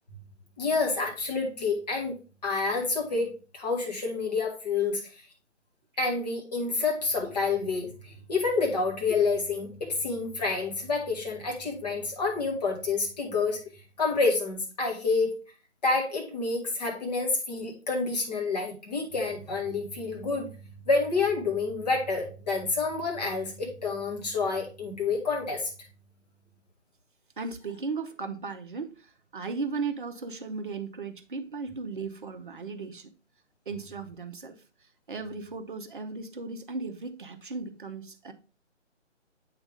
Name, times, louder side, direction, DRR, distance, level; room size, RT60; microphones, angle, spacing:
voice 1, 0.6-2.1 2.4-5.0 6.0-13.6 14.0-15.3 15.8-20.6 20.9-25.7, left 4 dB, 35° left, 1.8 m, -28 dB
voice 2, 27.4-33.1 33.7-34.6 35.1-38.3, right 4 dB, 45° right, 0.7 m, -36 dB
8.1 x 3.5 x 3.4 m
figure-of-eight pair, 145°, 36 cm